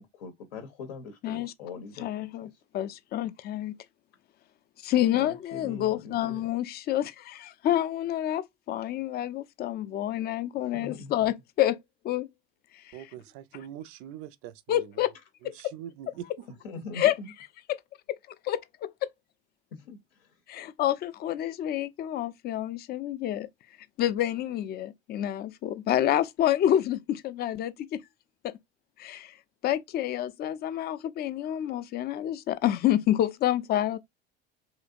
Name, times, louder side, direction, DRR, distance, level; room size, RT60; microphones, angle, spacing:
voice 1, 0.0-2.5 5.1-6.5 10.7-11.1 16.6-17.3 19.7-20.3, left 4 dB, 70° left, 0.7 m, -42 dB
voice 2, 2.0-3.7 4.8-11.8 12.0-12.3 14.7-15.1 15.4-15.5 17.0-17.1 18.4-18.9 20.5-23.5 24.0-28.0 28.4-28.5 29.0-29.3 29.6-34.0, left 12 dB, 35° left, 0.4 m, -28 dB
voice 3, 12.9-15.0 15.4-16.3, right 10 dB, 45° right, 0.5 m, -43 dB
3.1 x 2.7 x 2.4 m
figure-of-eight pair, 65°, 31 cm